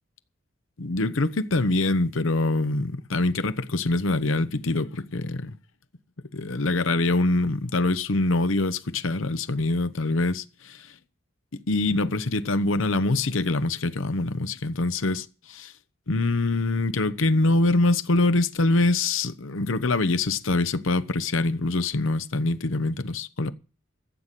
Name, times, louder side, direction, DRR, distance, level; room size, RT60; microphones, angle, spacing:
voice 1, 0.8-5.6 6.3-10.9 11.5-15.7 16.1-23.5, left 2 dB, 80° left, 0.9 m, -24 dB
14.0 x 7.6 x 8.2 m
head